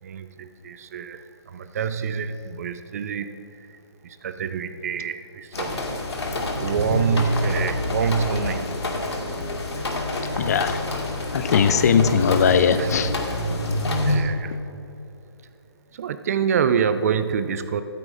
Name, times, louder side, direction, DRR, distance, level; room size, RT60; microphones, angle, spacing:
voice 1, 0.0-3.4 4.0-5.8 6.6-8.8 12.3-12.9 14.1-14.6 15.9-17.8, right 6 dB, 35° right, 11 dB, 0.5 m, -26 dB
sound 1, 5.5-14.2, left 1 dB, 75° left, 1.9 m, -27 dB
voice 2, 10.2-10.8 11.3-13.1, left 6 dB, 35° left, 12 dB, 0.5 m, -20 dB
13.5 x 12.5 x 2.6 m, 2.9 s
figure-of-eight pair, 150°, 14 cm